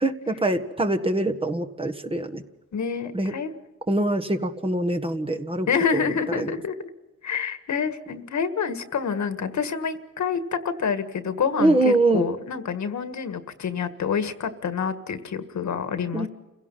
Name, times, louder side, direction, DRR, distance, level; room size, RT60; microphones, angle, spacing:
voice 1, 0.0-2.4 3.1-3.3 3.9-5.7 5.9-6.0 6.4-6.5 11.6-12.3 16.1-16.3, right 2 dB, 15° right, 5 dB, 1.4 m, -23 dB
voice 2, 2.7-3.5 5.7-6.9 7.2-16.3, left 6 dB, 65° left, 10 dB, 1.7 m, -27 dB
29.0 x 17.0 x 5.7 m, 1.1 s
cardioid pair, 100°, 31 cm